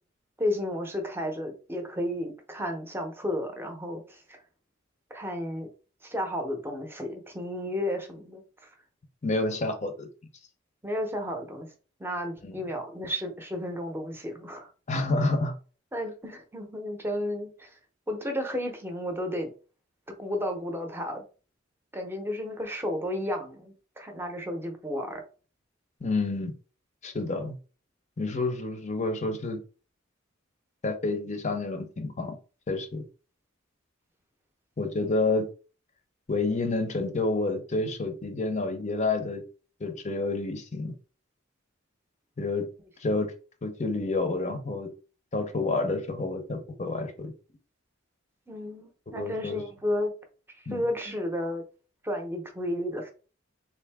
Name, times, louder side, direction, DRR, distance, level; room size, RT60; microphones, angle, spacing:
voice 1, 0.4-4.4 5.1-5.7 6.0-8.7 10.8-11.7 12.0-14.7 15.9-17.7 18.1-19.5 20.2-21.2 21.9-25.2 48.5-50.1 50.7-51.6 52.0-53.1, left 1 dB, 10° right, 0.7 m, -32 dB
voice 2, 9.2-10.1 12.4-12.5 14.9-15.5 26.0-26.5 27.0-27.5 28.2-29.6 30.8-32.4 32.7-33.0 34.8-35.5 36.3-39.4 39.8-40.9 42.4-42.7 43.0-43.3 43.6-44.9 45.3-47.3 49.1-49.6 50.7-50.9, left 2 dB, 35° left, 0.6 m, -29 dB
3.6 x 2.7 x 3.4 m
head